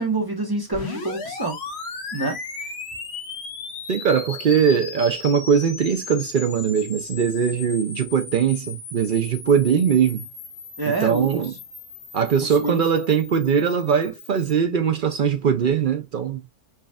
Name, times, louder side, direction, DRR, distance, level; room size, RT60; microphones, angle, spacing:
voice 1, 0.0-1.6 2.1-2.4 10.8-11.4 12.4-12.9, right 3 dB, 20° right, 0.9 m, -26 dB
sound 1, 0.7-14.6, left 4 dB, 50° left, 1.1 m, -37 dB
voice 2, 3.9-10.3 11.0-11.5 12.1-16.4, right 7 dB, 65° right, 0.5 m, -21 dB
5.8 x 2.4 x 2.2 m
omnidirectional pair, 1.5 m